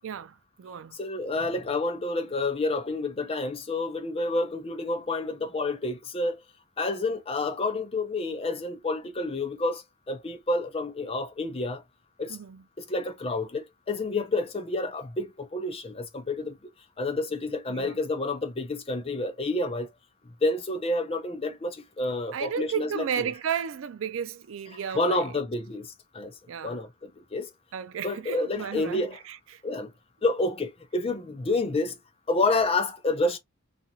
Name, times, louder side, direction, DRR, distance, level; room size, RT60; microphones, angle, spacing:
voice 1, 0.0-1.0 12.3-12.6 17.7-18.0 22.3-25.4 26.5-26.8 27.7-29.6, right 7 dB, 75° right, 0.4 m, -34 dB
voice 2, 0.9-6.4 6.8-11.8 12.2-12.4 12.8-16.6 17.0-19.9 20.3-23.3 24.9-26.3 26.6-27.5 28.0-29.2 29.6-29.9 30.2-32.0 32.3-33.4, left 2 dB, 30° left, 0.6 m, -29 dB
2.9 x 2.5 x 2.7 m
head